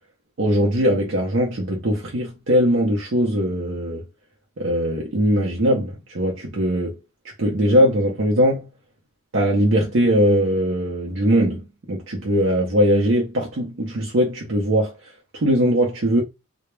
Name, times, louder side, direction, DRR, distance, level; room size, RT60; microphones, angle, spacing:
voice 1, 0.4-4.0 4.6-7.0 7.4-8.7 9.3-16.2, equal, 65° right, 0.6 m, -20 dB
2.3 x 2.0 x 3.0 m
head